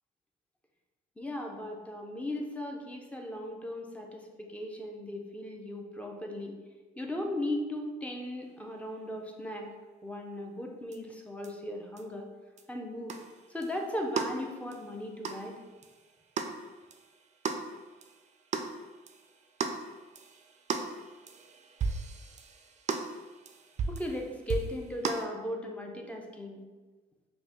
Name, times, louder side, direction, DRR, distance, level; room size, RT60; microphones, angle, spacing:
voice 1, 1.2-6.6 7.0-9.7 10.0-12.3 12.7-13.1 13.5-15.6 23.9-26.6, left 1 dB, 5° left, 1 dB, 0.6 m, -37 dB
sound 1, 10.9-11.0 11.4-11.5 12.0-12.1 12.6-12.7 13.1-25.3, right 4 dB, 35° right, 0.4 m, -37 dB
5.1 x 2.2 x 3.0 m, 1.3 s
cardioid pair, 90°, 20 cm